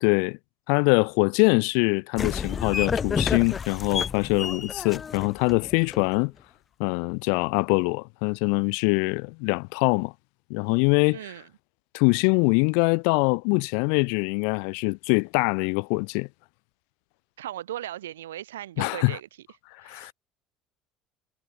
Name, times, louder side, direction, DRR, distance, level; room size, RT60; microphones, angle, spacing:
voice 1, 0.0-0.4 0.7-6.3 6.8-10.1 10.5-11.2 11.9-16.3 18.8-19.2 19.8-20.1, left 40 dB or more, 70° left, 1.0 m, -23 dB
sound 1, 2.2-6.2, left 6 dB, 35° left, 0.6 m, -30 dB
voice 2, 11.1-11.5 17.4-19.3 19.8-20.1, right 13 dB, 80° right, 2.3 m, -37 dB
hypercardioid pair, 65°, 0 cm